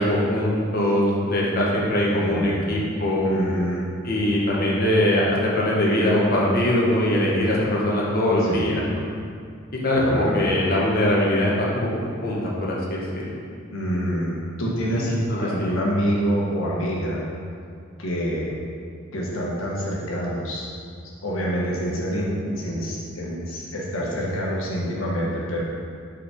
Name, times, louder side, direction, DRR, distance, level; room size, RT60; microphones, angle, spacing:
voice 1, 0.0-3.3 4.0-8.9 9.8-13.3 14.9-15.8, left 1 dB, 45° left, -4 dB, 1.1 m, -22 dB
voice 2, 2.1-2.8 3.2-3.8 8.4-8.8 9.9-10.5 13.7-17.2 18.0-18.5 19.1-20.7 21.2-25.6, equal, 75° left, -4 dB, 1.4 m, -27 dB
4.9 x 4.3 x 5.1 m, 2.2 s
head